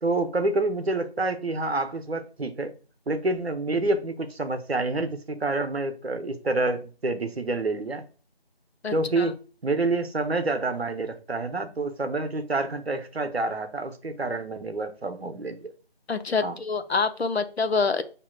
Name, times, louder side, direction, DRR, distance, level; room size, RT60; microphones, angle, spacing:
voice 1, 0.0-2.7 3.1-8.1 8.9-9.4 9.6-15.7 16.4-16.6, right 2 dB, 75° right, 0.8 m, -28 dB
voice 2, 8.8-9.3 16.1-18.0, left 4 dB, 85° left, 0.6 m, -26 dB
6.0 x 2.8 x 2.3 m
figure-of-eight pair, 170°, 31 cm